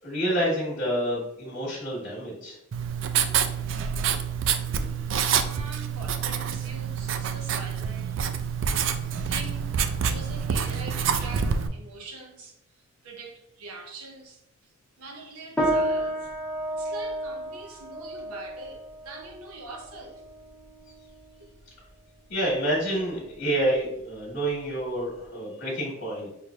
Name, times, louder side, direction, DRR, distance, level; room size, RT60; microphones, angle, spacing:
voice 1, 0.0-2.6 22.3-26.3, right 1 dB, 50° left, 1.3 m, -28 dB
Writing, 2.7-11.7, right 7 dB, 60° right, 0.3 m, -27 dB
voice 2, 4.7-5.2 5.5-8.2 9.0-9.7 10.0-12.6 13.0-16.3 16.7-20.2 21.4-21.5 22.3-22.5, right 3 dB, 90° right, 0.6 m, -43 dB
sound 1, 15.6-25.2, right 1 dB, 5° left, 0.6 m, -33 dB
5.5 x 3.2 x 2.4 m
head